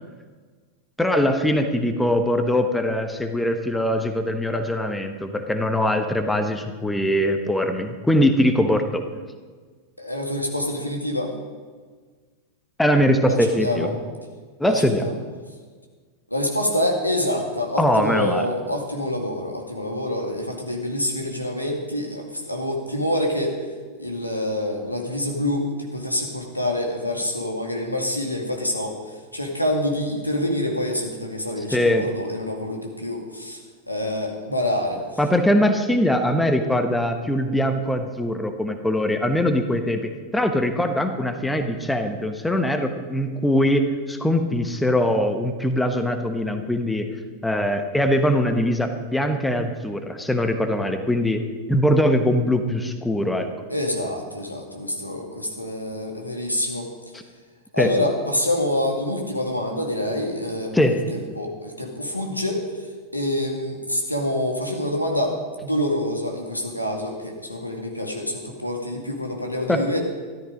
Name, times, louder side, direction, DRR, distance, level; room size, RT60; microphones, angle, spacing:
voice 1, 1.0-9.0 12.8-13.9 14.6-15.1 17.8-18.5 31.7-32.1 35.2-40.0 40.3-47.1 47.4-53.5 57.8-58.0 60.7-61.0 69.7-69.8, left 1 dB, 5° left, 7 dB, 1.1 m, -22 dB
voice 2, 10.0-11.3 13.3-13.9 14.6-15.1 16.3-23.6 24.0-29.0 29.3-33.6 33.9-35.0 53.7-56.9 57.7-60.7 61.1-62.6 63.1-70.0, left 1 dB, 90° left, 1 dB, 2.3 m, -26 dB
13.5 x 13.0 x 5.1 m, 1.5 s
figure-of-eight pair, 90°, 0 cm